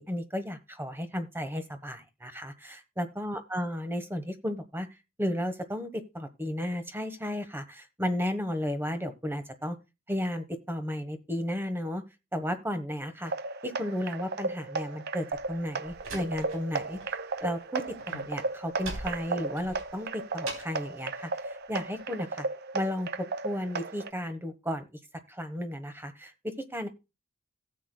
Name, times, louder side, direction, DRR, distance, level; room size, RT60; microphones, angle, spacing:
voice 1, 0.0-4.9 5.2-9.8 10.1-12.0 12.3-13.3 13.6-17.0 17.4-22.5 22.7-24.9 25.3-26.9, equal, 10° right, 11 dB, 1.1 m, -34 dB
sound 1, 13.3-24.1, right 3 dB, 50° right, 0.6 m, -35 dB
Slam, 15.3-17.1 17.4-20.9, right 2 dB, 80° right, 3.5 m, -43 dB
16.5 x 8.2 x 2.2 m, 0.26 s
head